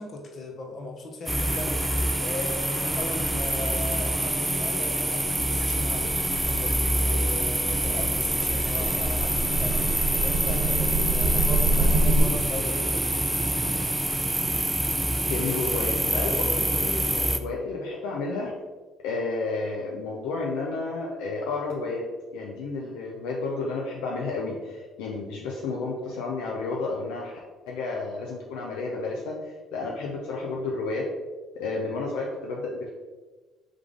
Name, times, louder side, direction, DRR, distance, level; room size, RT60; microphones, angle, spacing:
voice 1, 0.0-1.8 2.2-13.0, left 2 dB, 50° left, 2 dB, 0.9 m, -37 dB
sound 1, 1.3-17.4, right 1 dB, 10° right, 0.4 m, -26 dB
sound 2, 5.4-12.2, right 2 dB, 60° right, 1.0 m, -28 dB
voice 2, 15.3-18.5 19.0-22.0 22.3-27.3 27.7-31.0 31.6-32.9, left 3 dB, 75° left, -2 dB, 0.5 m, -31 dB
3.6 x 3.2 x 3.6 m, 1.3 s
hypercardioid pair, 55°, 0 cm